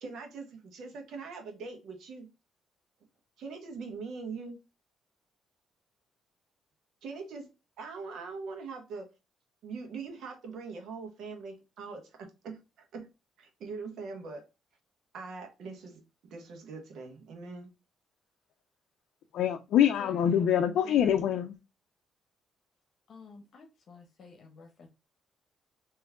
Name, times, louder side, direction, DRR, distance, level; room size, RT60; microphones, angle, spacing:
voice 1, 0.0-2.3 3.4-4.6 7.0-7.5 7.8-9.1 9.6-13.1 13.4-14.5 15.1-17.7, right 4 dB, 75° right, 1.3 m, -42 dB
voice 2, 19.3-21.6, left 9 dB, 80° left, 0.4 m, -25 dB
voice 3, 20.0-21.2 23.1-24.9, left 4 dB, 60° left, 0.8 m, -50 dB
3.5 x 3.0 x 3.5 m
cardioid pair, 90°, 0 cm